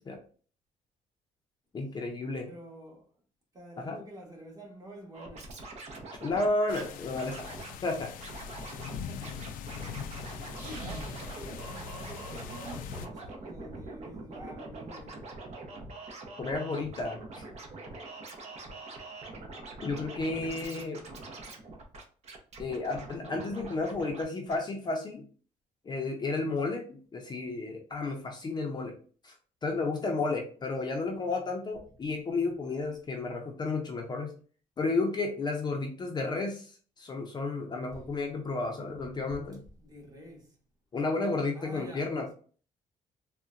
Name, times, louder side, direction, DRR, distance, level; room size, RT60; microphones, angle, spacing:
voice 1, 1.7-2.5 3.8-4.0 6.2-7.4 7.8-8.1 16.4-17.4 19.8-21.0 22.6-25.2 25.9-28.9 29.2-29.3 29.6-34.3 34.8-39.6 40.9-42.3, left 3 dB, 30° left, 0.5 m, -32 dB
voice 2, 2.5-3.1 3.5-5.5 8.9-9.5 10.3-15.3 37.9-38.1 39.3-39.4 39.8-40.6 41.5-42.3, right 1 dB, 25° right, 1.1 m, -48 dB
Scratching (performance technique), 5.1-6.9 7.1-7.7 8.2-9.0 9.2-24.2 24.5-24.6, right 2 dB, 50° right, 0.7 m, -44 dB
sound 1, 6.7-13.1, left 7 dB, 80° left, 0.4 m, -42 dB
sound 2, 10.5-12.6, right 1 dB, 75° right, 1.2 m, -44 dB
3.7 x 2.1 x 2.4 m
cardioid pair, 120°, 14 cm